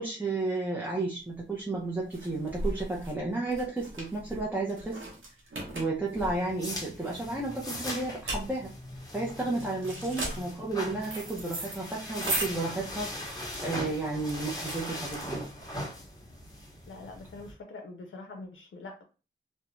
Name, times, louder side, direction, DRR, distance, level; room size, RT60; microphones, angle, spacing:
voice 1, 0.0-5.1 5.7-8.7 9.1-15.4, right 2 dB, 10° right, -4 dB, 0.5 m, -32 dB
sound 1, 1.3-15.7, right 1 dB, 85° right, 0.8 m, -38 dB
sound 2, 6.2-17.5, left 1 dB, 20° left, 0.8 m, -40 dB
voice 2, 10.2-10.5 16.9-19.0, left 2 dB, 85° left, 3 dB, 0.4 m, -44 dB
2.3 x 2.1 x 3.0 m, 0.33 s
wide cardioid pair, 110°, 20 cm